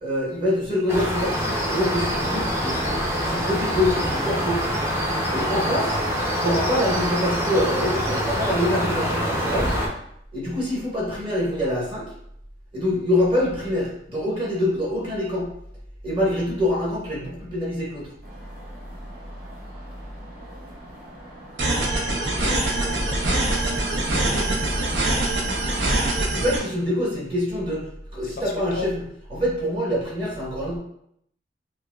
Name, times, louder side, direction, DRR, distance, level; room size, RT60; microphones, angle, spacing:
voice 1, 0.0-4.7 5.3-6.0 6.4-9.8 10.3-12.1 12.7-15.5 16.0-18.1 26.3-27.8 28.1-29.0 29.3-30.8, left 1 dB, 30° right, -5 dB, 1.3 m, -25 dB
sound 1, 0.9-9.9, equal, 15° right, 0.6 m, -25 dB
sound 2, 18.2-26.6, equal, 60° right, 1.3 m, -44 dB
sound 3, 21.6-26.6, right 1 dB, 85° right, 0.7 m, -23 dB
voice 2, 22.2-24.6 28.2-28.9, left 3 dB, 55° left, 1 dB, 0.5 m, -37 dB
5.3 x 2.2 x 2.3 m, 0.72 s
head